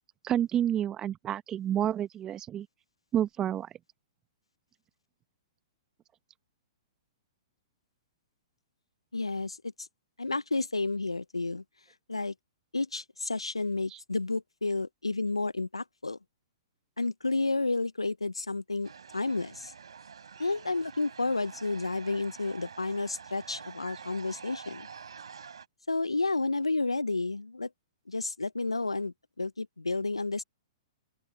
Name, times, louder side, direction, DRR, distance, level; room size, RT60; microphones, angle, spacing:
voice 1, 0.2-2.7 3.1-3.7 13.9-14.0, right 10 dB, 20° right, 1.3 m, -29 dB
voice 2, 9.1-9.9 10.2-11.6 12.1-12.3 12.7-16.2 17.0-19.7 20.4-24.9 25.9-27.7 28.1-30.4, left 3 dB, 85° left, 0.6 m, -31 dB
sound 1, 18.8-25.7, right 6 dB, 70° right, 4.0 m, -47 dB
open air
figure-of-eight pair, 115°, 3 cm